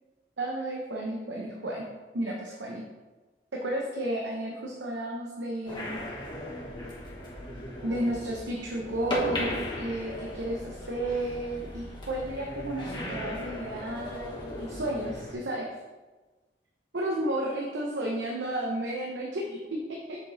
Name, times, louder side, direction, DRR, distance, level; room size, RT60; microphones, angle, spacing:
voice 1, 0.4-1.9 2.1-2.8 3.5-6.0 7.8-9.5 9.8-15.7 16.9-20.2, right 1 dB, 75° right, -1 dB, 0.8 m, -32 dB
sound 1, 5.7-15.3, left 1 dB, 25° left, 1.1 m, -37 dB
6.6 x 4.8 x 4.0 m, 1.3 s
head